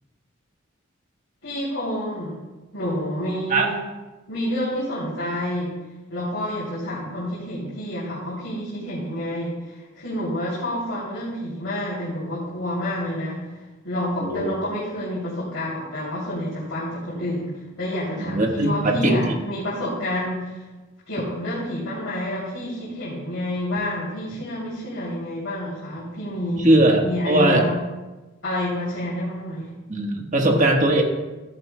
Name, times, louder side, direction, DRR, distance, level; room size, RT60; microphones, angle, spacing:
voice 1, 1.4-2.4 2.7-3.8 4.3-5.8 6.1-13.4 13.8-20.6 21.1-26.7 27.0-27.7 28.4-29.7, left 1 dB, 75° left, -8 dB, 2.9 m, -28 dB
voice 2, 14.2-14.5 18.2-19.3 26.6-27.6 29.9-31.0, right 1 dB, 40° right, 2 dB, 1.3 m, -19 dB
13.5 x 9.9 x 2.2 m, 1.2 s
head